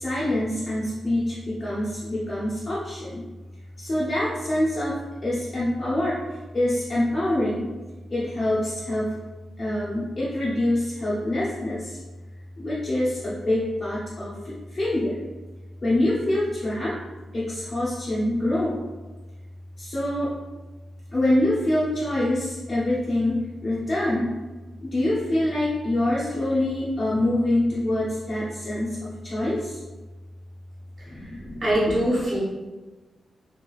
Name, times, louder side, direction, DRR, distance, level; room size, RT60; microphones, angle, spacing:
voice 1, 0.0-3.2 3.8-5.0 5.2-6.2 6.5-7.7 8.1-9.1 9.6-11.9 12.6-14.3 14.7-15.2 15.8-16.9 17.3-18.8 19.8-20.3 21.1-23.4 23.6-24.3 24.8-29.7 31.1-31.7, left 1 dB, 30° left, -9 dB, 0.6 m, -25 dB
voice 2, 31.6-32.4, equal, 30° right, -9 dB, 1.2 m, -22 dB
3.3 x 3.1 x 2.3 m, 1.2 s
wide cardioid pair, 180°, 0 cm